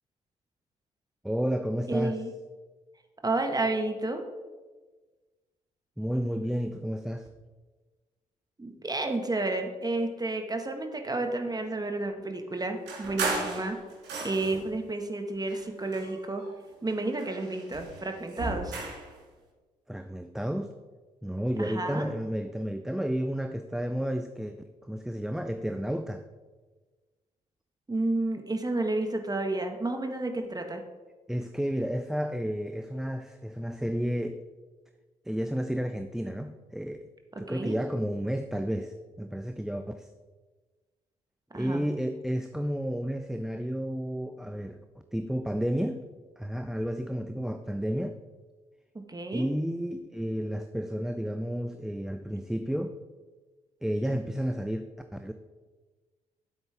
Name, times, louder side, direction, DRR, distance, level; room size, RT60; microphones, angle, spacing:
voice 1, 1.2-2.2 6.0-7.3 19.9-20.7 21.2-24.5 24.9-26.2 31.3-34.4 35.3-37.1 37.4-40.1 41.5-44.8 45.1-46.0 46.4-48.2 49.3-53.0 53.8-54.9 55.1-55.3, equal, ahead, 7 dB, 0.6 m, -31 dB
voice 2, 1.9-2.3 3.2-4.2 8.6-13.8 14.2-16.4 16.8-18.7 21.6-22.1 27.9-30.8 37.5-37.8 41.5-41.9 49.1-49.5, right 2 dB, 20° right, 5 dB, 1.6 m, -31 dB
sound 1, 12.9-14.7 15.4-16.6 16.9-19.1, right 3 dB, 65° right, 2.5 m, -35 dB
13.5 x 8.0 x 3.5 m, 1.3 s
figure-of-eight pair, 40°, 19 cm